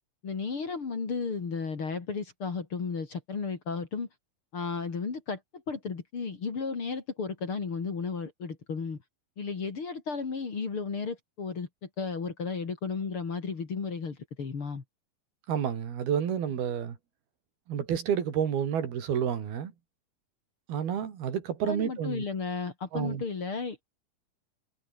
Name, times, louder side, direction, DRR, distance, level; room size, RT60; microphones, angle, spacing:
voice 1, 0.2-4.1 4.5-9.0 9.4-14.8 21.7-23.8, left 5 dB, 40° left, 3.3 m, -34 dB
voice 2, 15.5-17.0 17.7-19.7 20.7-22.3 22.9-23.2, right 8 dB, 80° right, 4.7 m, -30 dB
omnidirectional pair, 4.3 m